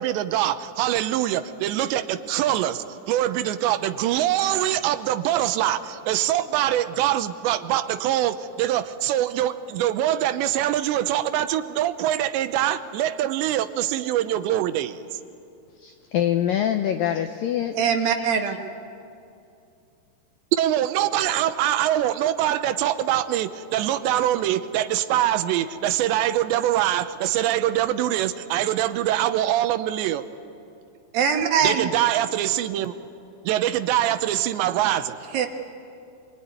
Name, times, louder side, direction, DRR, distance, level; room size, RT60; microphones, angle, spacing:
voice 1, 0.0-15.2 20.5-30.2 31.6-32.9 33.4-35.2, right 12 dB, 85° right, 11 dB, 3.0 m, -24 dB
voice 2, 15.8-17.8 18.2-18.3, left 10 dB, 85° left, 6 dB, 2.0 m, -24 dB
voice 3, 17.7-18.6 31.1-31.9 35.3-35.5, right 7 dB, 65° right, 4 dB, 2.7 m, -22 dB
25.0 x 23.0 x 9.5 m, 2.6 s
omnidirectional pair, 5.1 m